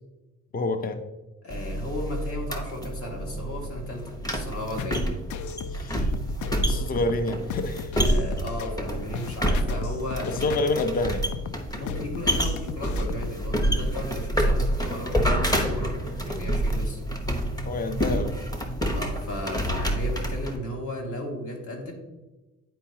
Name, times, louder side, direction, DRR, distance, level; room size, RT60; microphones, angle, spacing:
voice 1, 0.5-1.0 5.7-6.1 6.7-7.9 10.3-11.3 17.6-18.4, left 2 dB, 30° left, 8 dB, 0.6 m, -27 dB
voice 2, 1.4-5.1 8.0-10.6 11.7-17.0 18.9-21.9, left 1 dB, 50° left, 0 dB, 2.0 m, -35 dB
sound 1, 1.5-20.6, equal, 10° left, 1.0 m, -28 dB
sound 2, 4.8-13.4, left 6 dB, 75° left, 0.5 m, -36 dB
10.0 x 4.6 x 2.8 m, 1.1 s
cardioid pair, 90°, 30 cm